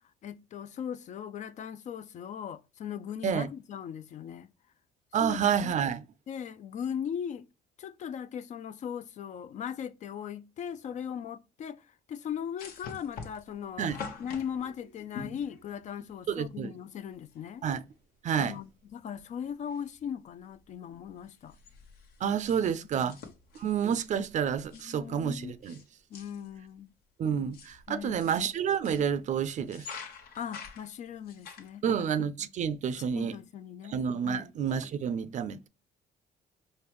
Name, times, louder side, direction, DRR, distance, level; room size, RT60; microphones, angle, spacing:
voice 1, 0.2-4.5 5.2-5.7 6.3-7.5 7.8-13.9 14.2-17.7 18.4-21.6 22.9-23.1 24.7-25.6 26.1-26.9 27.9-28.5 30.3-31.8 33.1-34.0 34.2-34.5, left 8 dB, 45° left, 0.4 m, -39 dB
voice 2, 5.1-6.0 13.8-14.0 16.3-16.7 17.6-17.8 18.2-18.6 22.2-23.2 23.5-25.8 27.2-29.9 31.8-33.3 33.9-35.7, right 7 dB, 45° right, 0.4 m, -29 dB
sound 1, 12.6-16.2 17.3-17.4 17.7-17.8 18.5-18.9 19.2-20.0 20.4-20.6 20.9-25.9 26.1-26.6 27.2-29.1 29.6-31.7, left 5 dB, 65° left, 1.0 m, -46 dB
5.0 x 2.2 x 3.0 m
cardioid pair, 110°, 17 cm